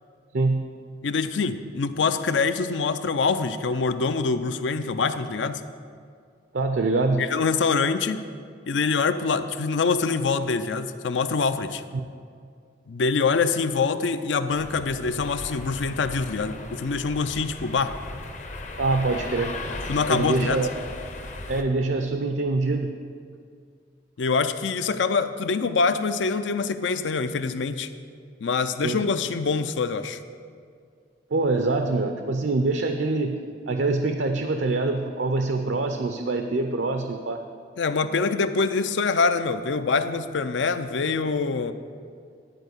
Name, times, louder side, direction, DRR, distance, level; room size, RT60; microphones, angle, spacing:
voice 1, 1.0-5.6 7.2-8.2 8.7-11.8 12.9-17.9 19.9-20.6 24.2-27.9 28.4-30.2 37.8-41.7, left 4 dB, 85° left, 10 dB, 0.5 m, -25 dB
voice 2, 6.5-7.3 11.9-12.0 18.8-19.5 20.1-20.7 21.5-22.9 28.8-29.0 31.3-33.4 33.7-37.4, right 3 dB, 80° right, 5 dB, 0.5 m, -24 dB
sound 1, 14.5-21.6, left 2 dB, 40° left, 0.7 m, -37 dB
10.5 x 4.5 x 8.0 m, 2.2 s
head